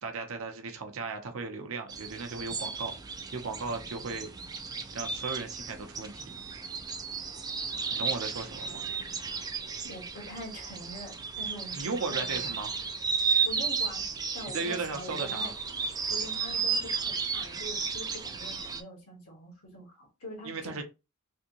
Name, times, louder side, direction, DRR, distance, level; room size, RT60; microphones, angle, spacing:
voice 1, 0.0-4.3 4.9-6.2 7.9-8.8 11.7-12.7 14.5-15.5 20.4-20.8, right 4 dB, 70° right, 0.6 m, -36 dB
sound 1, 1.9-18.8, right 5 dB, 20° right, 0.4 m, -34 dB
voice 2, 9.8-12.6 13.4-14.0 14.3-15.5 16.1-20.8, equal, 90° left, 1.5 m, -44 dB
3.5 x 2.6 x 2.8 m
head